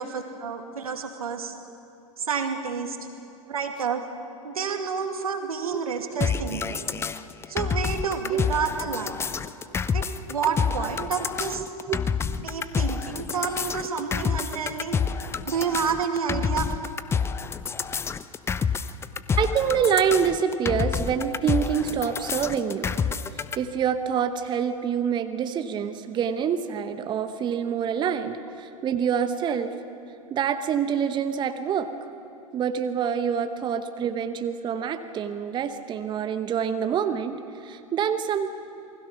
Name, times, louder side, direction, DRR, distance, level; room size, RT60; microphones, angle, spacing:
voice 1, 0.0-1.5 2.2-3.0 3.5-4.0 4.4-6.9 7.5-9.3 9.9-11.6 12.4-15.0 15.5-16.7, right 6 dB, 70° right, 5 dB, 2.3 m, -29 dB
sound 1, 6.2-23.6, left 6 dB, 15° left, 0.6 m, -28 dB
voice 2, 19.4-22.9 23.6-29.7 30.3-31.9 32.5-38.5, right 7 dB, 25° right, 9 dB, 1.1 m, -26 dB
28.0 x 20.0 x 5.9 m, 2.7 s
figure-of-eight pair, 95°, 19 cm